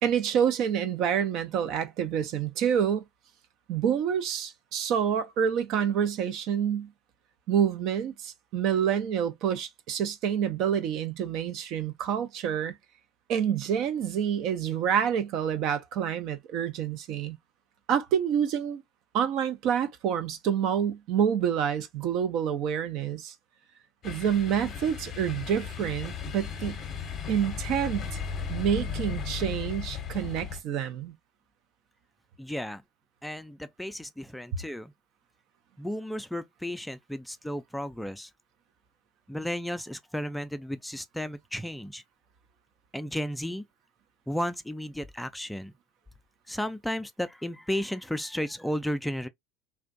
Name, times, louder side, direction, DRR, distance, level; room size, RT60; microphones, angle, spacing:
voice 1, 0.0-3.0 3.7-6.9 7.5-12.8 13.3-17.4 17.9-18.8 19.1-23.3 24.0-26.8 27.3-28.1 28.5-31.1, right 8 dB, 55° right, 0.5 m, -27 dB
sound 1, 24.0-30.6, left 6 dB, 40° left, 0.7 m, -36 dB
voice 2, 32.4-32.8 33.2-34.9 35.8-38.3 39.3-42.0 42.9-43.6 44.3-45.7 46.5-49.3, equal, 5° left, 0.3 m, -33 dB
2.5 x 2.1 x 2.4 m
hypercardioid pair, 80°, 0 cm